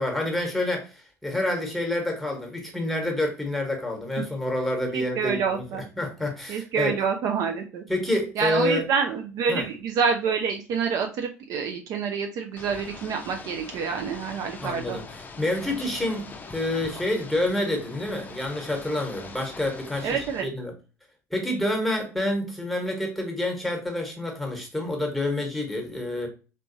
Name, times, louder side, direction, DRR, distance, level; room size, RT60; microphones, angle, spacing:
voice 1, 0.0-5.6 6.0-7.0 7.9-8.8 9.5-9.6 14.6-20.7 21.3-26.3, left 1 dB, ahead, 1.2 m, -28 dB
voice 2, 4.9-5.8 6.5-7.8 8.4-15.0 20.0-20.5, right 6 dB, 45° right, 0.5 m, -27 dB
Ocean / Boat Water vehicle, 12.6-20.4, left 4 dB, 20° left, 0.5 m, -42 dB
3.2 x 3.0 x 2.6 m
figure-of-eight pair, 65°, 8 cm